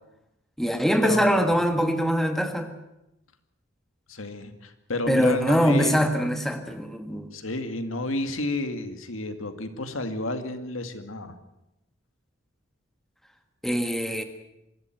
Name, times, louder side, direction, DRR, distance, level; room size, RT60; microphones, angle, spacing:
voice 1, 0.6-2.7 5.1-7.3 13.6-14.2, equal, ahead, 6 dB, 1.6 m, -23 dB
voice 2, 4.1-6.0 7.3-11.4, left 2 dB, 90° left, 8 dB, 2.2 m, -31 dB
24.5 x 14.0 x 9.1 m, 0.89 s
head